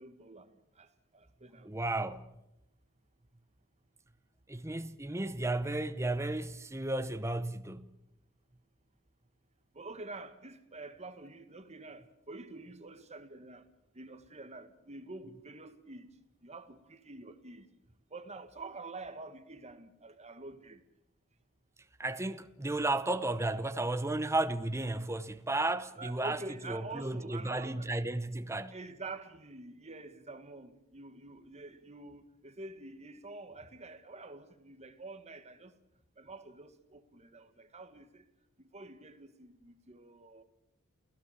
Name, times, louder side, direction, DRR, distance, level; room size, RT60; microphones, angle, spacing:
voice 1, 0.0-1.7 9.7-13.7 13.9-16.1 16.4-17.7 18.1-20.8 26.0-27.9 28.7-35.7 36.2-38.3 38.6-40.4, right 3 dB, 30° right, 1.7 m, -47 dB
voice 2, 1.6-2.3 4.5-7.9 22.0-26.4 26.6-28.8, right 2 dB, 15° right, 0.9 m, -33 dB
29.0 x 16.0 x 7.3 m
head